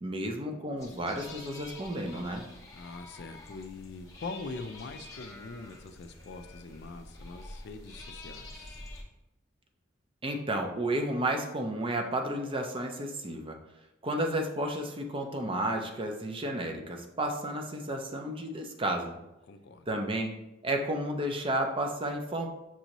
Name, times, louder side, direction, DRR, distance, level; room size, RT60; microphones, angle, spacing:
voice 1, 0.0-2.4 10.2-13.6 14.0-19.2 19.9-22.5, right 1 dB, 30° right, 3 dB, 0.5 m, -32 dB
sound 1, 0.8-9.0, left 2 dB, 15° left, 0.6 m, -47 dB
voice 2, 2.7-8.8 19.5-19.9, left 3 dB, 60° left, 8 dB, 0.4 m, -43 dB
6.1 x 2.7 x 2.9 m, 0.92 s
head